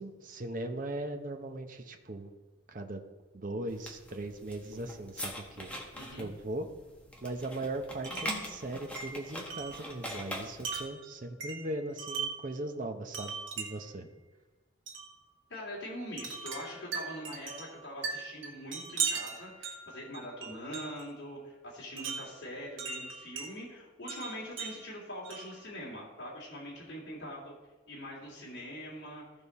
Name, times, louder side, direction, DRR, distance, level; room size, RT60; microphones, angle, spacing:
voice 1, 0.0-2.3 2.7-3.0 3.3-5.7 6.2-6.7 7.2-14.0, right 2 dB, 45° right, 6 dB, 0.8 m, -39 dB
sound 1, 3.7-10.9, equal, 5° left, 1.3 m, -43 dB
voice 2, 5.9-6.3 15.5-27.5 27.9-29.2, equal, 60° left, -5 dB, 2.8 m, -43 dB
Wind chime, 8.0-8.4 9.0-12.5 13.1-14.0 14.9-15.1 16.2-21.1 22.0-23.5 24.1-25.6, right 6 dB, 85° right, 1.6 m, -39 dB
15.0 x 5.2 x 4.2 m, 1.2 s
head